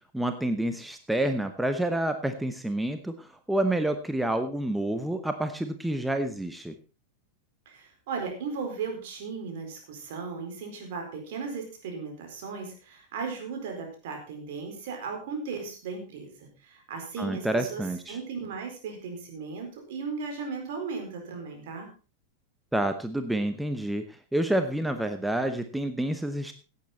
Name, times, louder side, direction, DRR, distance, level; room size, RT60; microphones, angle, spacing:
voice 1, 0.1-6.7 17.2-18.2 22.7-26.5, right 1 dB, 5° right, 8 dB, 1.0 m, -28 dB
voice 2, 7.7-17.8 18.1-21.9, right 5 dB, 55° right, 2 dB, 4.5 m, -36 dB
16.5 x 8.6 x 4.2 m, 0.34 s
figure-of-eight pair, 90°, 0 cm